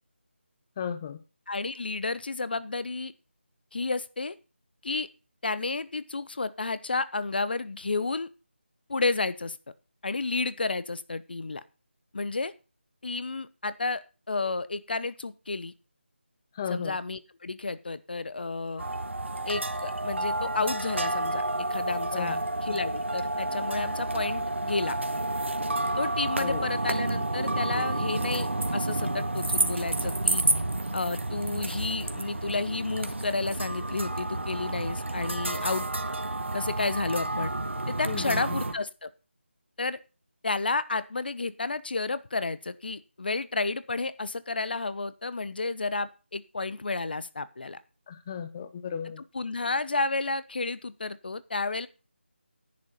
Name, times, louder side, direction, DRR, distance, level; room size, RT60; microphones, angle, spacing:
voice 1, 0.8-1.2 16.6-17.0 22.1-22.4 26.4-26.7 38.1-38.4 48.1-49.2, left 7 dB, 20° left, 11 dB, 0.8 m, -34 dB
voice 2, 1.5-3.1 3.7-4.3 4.8-5.1 5.4-8.3 8.9-9.6 10.0-11.6 12.1-12.5 13.0-15.7 16.7-18.8 19.5-21.4 21.7-25.0 26.0-30.4 30.9-35.9 36.5-37.5 37.9-39.1 39.8-40.0 40.4-47.8 49.3-51.9, left 3 dB, 55° left, 16 dB, 0.8 m, -31 dB
sound 1, 18.8-38.7, right 2 dB, 80° right, 1.6 m, -30 dB
10.5 x 7.4 x 5.4 m, 0.32 s
figure-of-eight pair, 160°, 6 cm